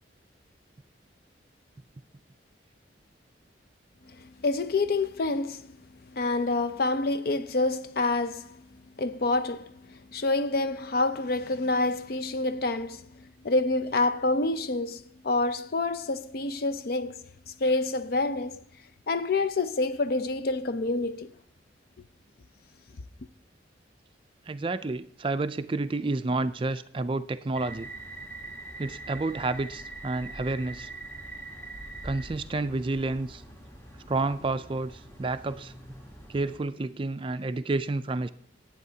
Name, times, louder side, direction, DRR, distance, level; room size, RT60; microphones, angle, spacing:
voice 1, 4.2-5.7 6.1-8.6 9.0-18.6 19.1-21.3, left 2 dB, 55° left, 0.5 m, -28 dB
voice 2, 24.5-27.9 28.8-30.9 32.0-33.4 34.1-35.7 36.3-38.3, right 3 dB, 30° right, 0.4 m, -30 dB
sound 1, 27.5-36.6, right 2 dB, 15° left, 1.2 m, -43 dB
18.5 x 8.9 x 2.8 m
head